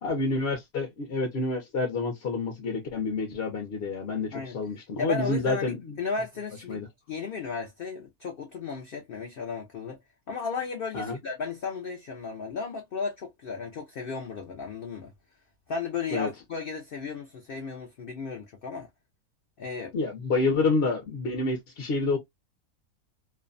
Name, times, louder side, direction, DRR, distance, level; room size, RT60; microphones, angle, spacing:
voice 1, 0.0-5.8 6.7-6.9 10.9-11.2 16.1-16.3 19.9-22.2, left 3 dB, 55° left, 0.7 m, -28 dB
voice 2, 5.0-10.0 10.3-15.1 15.7-18.9 19.6-19.9, left 5 dB, 90° left, 0.4 m, -34 dB
2.7 x 2.1 x 2.4 m
omnidirectional pair, 1.6 m